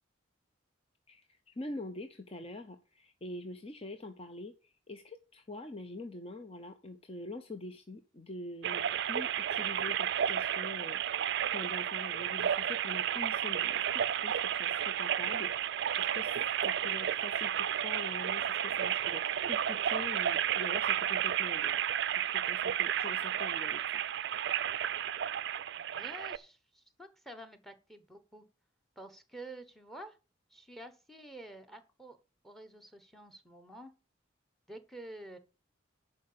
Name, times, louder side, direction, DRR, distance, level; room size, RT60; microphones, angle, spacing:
voice 1, 1.1-11.0 11.5-21.8 22.1-24.0, left 2 dB, 30° left, 6 dB, 0.7 m, -45 dB
sound 1, 8.6-26.4, right 9 dB, 60° right, 0.4 m, -32 dB
voice 2, 25.9-28.5 29.0-30.2 30.5-32.2 32.4-33.9 34.7-35.4, right 1 dB, ahead, 10 dB, 1.1 m, -49 dB
11.0 x 4.8 x 6.8 m, 0.32 s
head